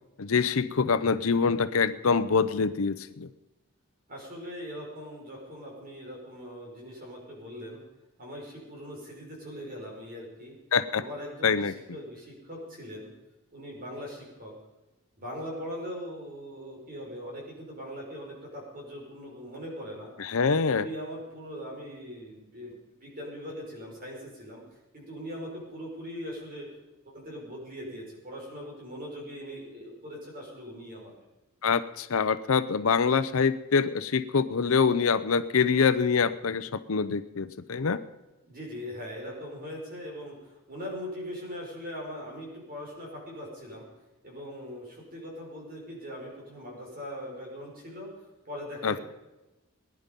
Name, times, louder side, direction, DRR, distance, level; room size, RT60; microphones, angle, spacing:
voice 1, 0.2-3.3 10.7-11.0 11.4-11.7 20.2-20.9 31.6-38.0 48.8-49.0, left 5 dB, 70° left, 13 dB, 0.7 m, -25 dB
voice 2, 4.1-7.8 8.2-10.5 11.0-13.1 13.5-14.5 15.2-20.1 20.6-24.6 24.9-26.7 27.1-31.1 38.5-43.9 44.2-49.0, equal, 40° right, -2 dB, 5.4 m, -41 dB
20.0 x 10.5 x 5.3 m, 1.0 s
head